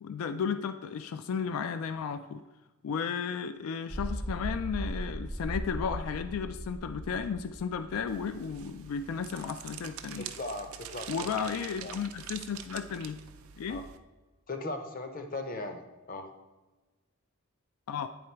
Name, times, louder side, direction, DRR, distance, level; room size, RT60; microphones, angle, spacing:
voice 1, 0.0-2.4 2.8-10.3 11.1-13.2 13.6-13.8 17.9-18.1, left 6 dB, 80° left, 10 dB, 0.3 m, -34 dB
sound 1, 3.9-8.6 8.9-9.0, right 1 dB, ahead, 0.4 m, -38 dB
sound 2, 8.1-14.0, right 9 dB, 80° right, 0.4 m, -45 dB
voice 2, 10.2-11.3 11.8-11.9 13.7-13.8 14.5-16.3, left 2 dB, 40° left, 6 dB, 0.6 m, -38 dB
9.3 x 3.8 x 4.4 m, 1.2 s
head